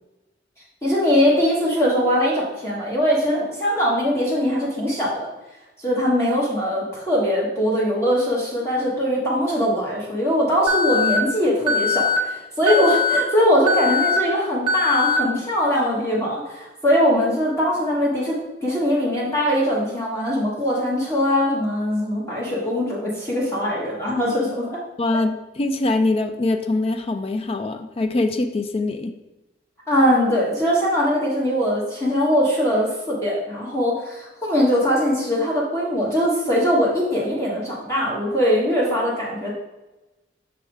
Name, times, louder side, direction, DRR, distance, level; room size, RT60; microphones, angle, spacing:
voice 1, 0.8-5.3 5.8-24.8 29.9-39.5, equal, 15° left, -6 dB, 1.2 m, -21 dB
Alarm, 10.7-11.2 11.7-12.2 12.7-13.2 13.7-14.2 14.7-15.2, left 5 dB, 25° right, 0.9 m, -21 dB
voice 2, 25.0-29.1, left 2 dB, 30° left, 8 dB, 0.3 m, -23 dB
6.2 x 3.5 x 4.6 m, 1.0 s
head